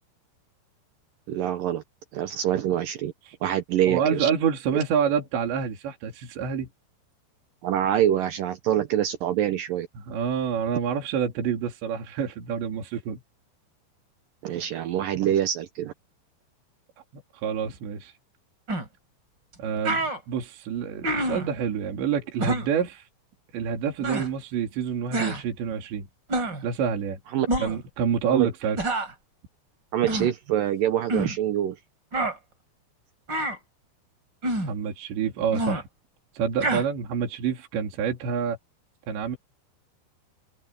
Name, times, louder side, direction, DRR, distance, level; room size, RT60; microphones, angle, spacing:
voice 1, 1.3-1.8 2.1-3.1 3.4-4.3 7.6-9.9 14.4-15.9 27.3-27.5 28.3-28.5 29.9-31.8, right 11 dB, 90° right, 1.9 m, -25 dB
voice 2, 3.9-6.7 10.0-13.2 17.4-18.1 19.6-23.1 23.5-26.1 26.6-27.2 27.6-28.8 34.7-35.9 36.4-38.6 39.1-39.4, right 7 dB, 65° right, 5.3 m, -27 dB
sound 1, 18.7-18.9 19.5-19.6 19.8-20.2 21.0-21.5 22.4-22.7 24.0-24.3 25.1-25.4 26.3-26.6 27.5-27.8 28.8-29.1 30.1-30.3 31.1-31.4 32.1-32.4 33.3-33.6 34.4-34.7 35.5-35.8 36.6-36.8, right 1 dB, 25° right, 4.9 m, -27 dB
omnidirectional pair, 5.5 m